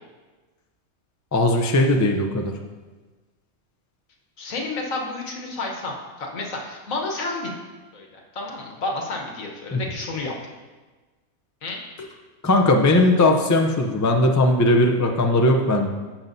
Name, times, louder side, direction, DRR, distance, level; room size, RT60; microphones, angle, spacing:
voice 1, 1.3-2.5 9.7-9.8 12.4-15.9, left 1 dB, 25° left, 2 dB, 0.4 m, -18 dB
voice 2, 4.4-7.5 7.9-10.3 11.6-11.8, left 2 dB, 75° left, 1 dB, 1.6 m, -30 dB
15.0 x 5.8 x 2.7 m, 1.3 s
omnidirectional pair, 1.4 m